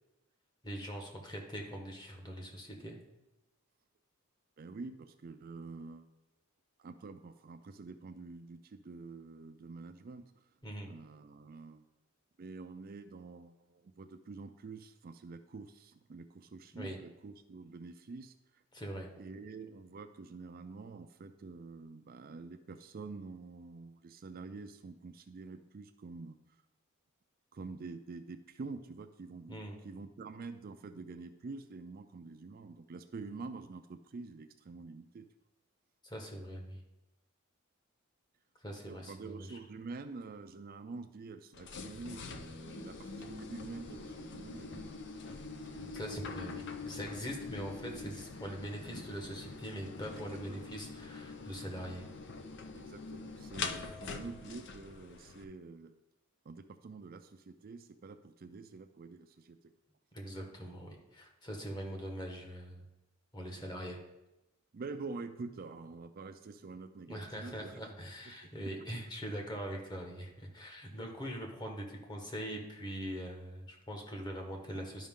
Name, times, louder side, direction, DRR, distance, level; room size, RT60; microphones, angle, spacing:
voice 1, 0.6-3.0 10.6-10.9 16.7-17.0 18.7-19.1 29.5-29.7 36.0-36.8 38.6-39.6 45.9-52.1 60.1-62.8 63.3-64.0 67.1-75.1, equal, 20° left, 1 dB, 1.2 m, -42 dB
voice 2, 4.6-6.1 6.8-10.5 10.8-11.9 12.4-18.6 19.2-26.4 27.5-35.3 38.8-45.1 45.3-45.8 50.2-50.7 52.7-56.0 56.4-59.7 64.7-67.9 68.3-68.4 68.8-69.0, right 4 dB, 45° right, 8 dB, 0.4 m, -47 dB
sound 1, 41.5-55.4, left 4 dB, 55° left, 0.6 m, -44 dB
11.5 x 5.2 x 3.7 m, 0.98 s
head